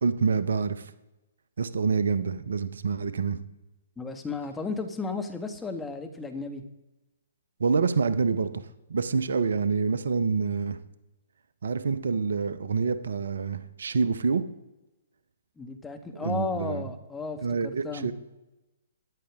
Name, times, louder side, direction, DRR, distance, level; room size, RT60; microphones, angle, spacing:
voice 1, 0.0-0.9 1.6-3.4 7.6-8.6 8.9-10.8 11.6-14.4 16.2-16.8 17.4-18.1, right 5 dB, 65° right, 13 dB, 0.8 m, -27 dB
voice 2, 4.0-6.6 15.6-18.1, left 4 dB, 10° left, 4 dB, 1.4 m, -34 dB
13.5 x 9.8 x 3.7 m, 1.0 s
figure-of-eight pair, 125°, 0 cm